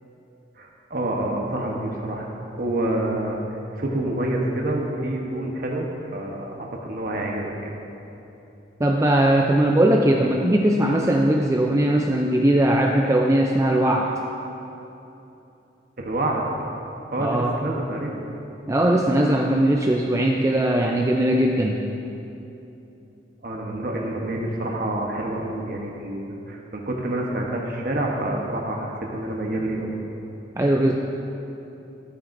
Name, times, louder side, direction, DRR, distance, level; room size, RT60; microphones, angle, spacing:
voice 1, 0.6-2.3 2.6-3.4 3.8-7.7 16.0-16.4 17.1-18.2 23.4-30.0, right 1 dB, 50° right, -1 dB, 1.0 m, -27 dB
voice 2, 8.8-14.1 17.2-17.6 18.7-21.8 30.6-30.9, right 1 dB, 15° right, 0 dB, 0.4 m, -19 dB
14.0 x 9.0 x 2.6 m, 2.9 s
head